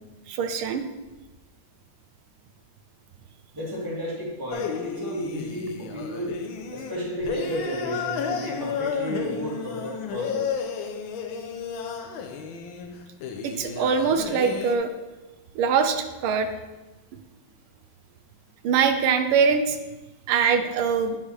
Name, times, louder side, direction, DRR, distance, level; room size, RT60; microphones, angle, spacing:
voice 1, 0.3-0.9 13.4-14.9 15.5-16.5 18.6-19.8 20.3-21.2, right 6 dB, 90° right, 7 dB, 1.5 m, -23 dB
voice 2, 3.5-6.3 6.7-10.5, equal, 10° right, -6 dB, 2.1 m, -32 dB
sound 1, 4.5-14.8, left 6 dB, 75° left, 1.4 m, -32 dB
10.0 x 5.3 x 3.2 m, 1.1 s
omnidirectional pair, 2.3 m